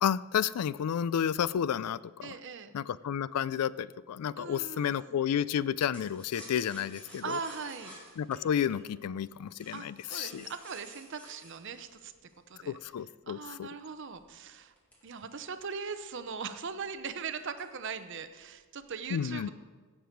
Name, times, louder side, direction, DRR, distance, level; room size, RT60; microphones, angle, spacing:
voice 1, 0.0-2.4 2.7-7.4 8.2-10.5 12.7-13.7 19.1-19.5, left 8 dB, 90° left, 19 dB, 0.3 m, -31 dB
voice 2, 2.2-2.7 4.4-5.2 7.2-8.0 9.7-12.1 12.5-12.8 13.3-14.7 15.0-19.5, right 5 dB, 55° right, 10 dB, 0.7 m, -40 dB
sound 1, 5.9-12.8 13.4-15.8 16.2-16.3 16.6-16.9 17.4-18.1 18.4-19.0, equal, 5° left, 2.2 m, -52 dB
16.0 x 6.7 x 4.5 m, 1.4 s
head